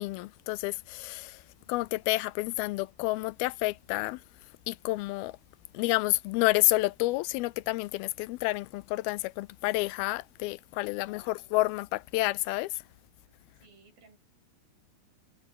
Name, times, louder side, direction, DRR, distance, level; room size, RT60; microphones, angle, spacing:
voice 1, 0.0-1.4 1.7-4.2 4.7-5.4 5.7-12.7, left 20 dB, 85° left, 2.5 m, -29 dB
voice 2, 1.6-2.0 10.8-11.6 13.5-14.2, right 4 dB, 70° right, 9.3 m, -62 dB
omnidirectional pair, 4.4 m